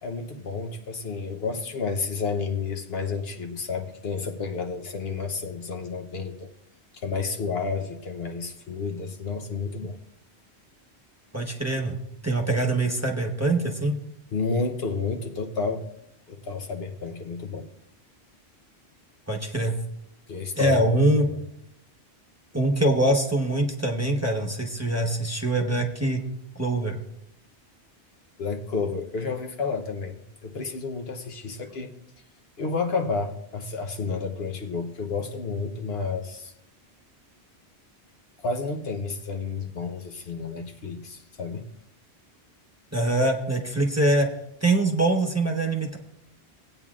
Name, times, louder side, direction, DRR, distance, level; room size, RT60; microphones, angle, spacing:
voice 1, 0.0-6.5 6.9-10.0 14.3-15.8 16.3-17.7 20.3-20.9 21.2-21.4 28.4-31.9 32.6-36.5 38.4-41.6, left 4 dB, 65° left, 5 dB, 1.1 m, -31 dB
voice 2, 11.3-12.0 12.2-13.9 19.3-19.7 20.6-21.2 22.5-26.2 26.5-27.0 42.9-44.3 44.6-46.0, right 1 dB, 15° right, 0 dB, 1.0 m, -23 dB
18.0 x 8.8 x 2.4 m, 0.79 s
omnidirectional pair, 1.1 m